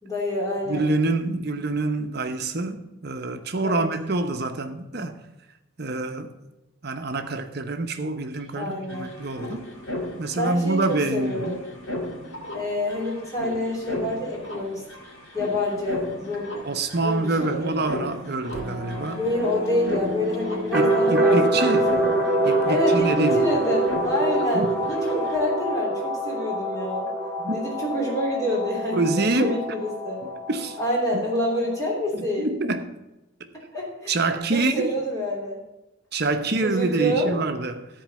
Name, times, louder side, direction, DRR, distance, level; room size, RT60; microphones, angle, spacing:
voice 1, 0.0-0.9 3.6-3.8 8.6-9.1 10.4-11.6 12.5-14.8 15.3-16.5 17.0-17.8 19.2-22.1 22.6-27.1 27.5-30.2 30.8-32.5 33.7-35.6 36.6-37.3, left 1 dB, 15° left, 3.1 m, -27 dB
voice 2, 0.7-5.1 5.8-6.3 6.8-9.7 10.2-11.6 16.6-19.2 20.7-21.9 22.4-23.4 24.5-24.8 27.4-27.6 28.9-29.6 30.5-30.8 31.1-31.3 32.1-33.0 34.1-35.0 36.1-37.9, right 2 dB, 50° right, 1.0 m, -26 dB
sound 1, 8.3-8.4 8.6-25.4, left 1 dB, 65° left, 2.7 m, -36 dB
sound 2, 18.5-32.1, right 1 dB, 5° right, 1.8 m, -26 dB
13.5 x 4.7 x 7.5 m
head